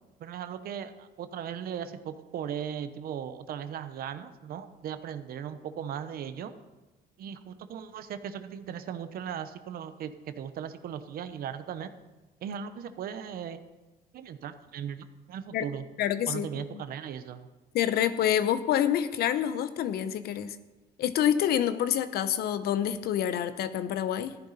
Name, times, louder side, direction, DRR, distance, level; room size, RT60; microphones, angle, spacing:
voice 1, 0.2-6.5 7.2-11.9 12.4-13.6 14.1-15.8 16.3-17.5, right 8 dB, 60° right, 11 dB, 0.9 m, -38 dB
voice 2, 16.0-16.8 17.7-20.6 21.0-24.4, left 10 dB, 70° left, 12 dB, 0.8 m, -27 dB
14.0 x 10.5 x 4.2 m, 1.1 s
cardioid pair, 110°, 17 cm